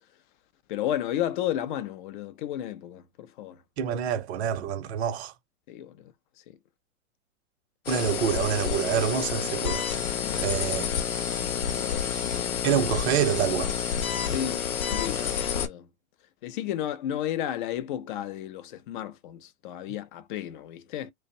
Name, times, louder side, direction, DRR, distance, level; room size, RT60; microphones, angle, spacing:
voice 1, 0.7-3.6 5.7-6.1 6.5-6.6 10.2-10.4 11.8-12.5 14.3-15.9 16.4-21.1, left 11 dB, 40° left, 0.4 m, -33 dB
voice 2, 3.8-5.3 7.9-10.1 10.4-10.9 11.8-11.9 12.6-13.8, right 9 dB, 50° right, 0.7 m, -27 dB
sound 1, 7.9-15.7, left 8 dB, 75° left, 0.7 m, -29 dB
2.4 x 2.0 x 2.6 m
figure-of-eight pair, 105°, 42 cm